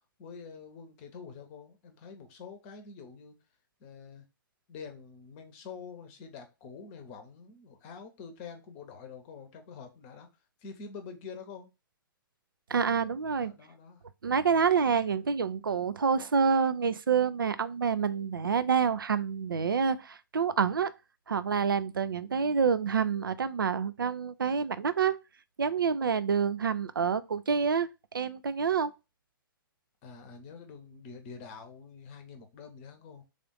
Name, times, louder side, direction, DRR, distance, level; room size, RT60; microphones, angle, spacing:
voice 1, 0.2-3.4 3.8-4.2 4.7-10.3 10.6-11.7 13.4-14.0 15.0-15.2 30.0-33.2, left 5 dB, 30° left, 0.8 m, -46 dB
voice 2, 12.7-13.5 14.2-20.9 21.3-25.2 25.6-28.9, right 6 dB, 70° right, 0.4 m, -27 dB
3.5 x 2.5 x 3.7 m
figure-of-eight pair, 115°, 12 cm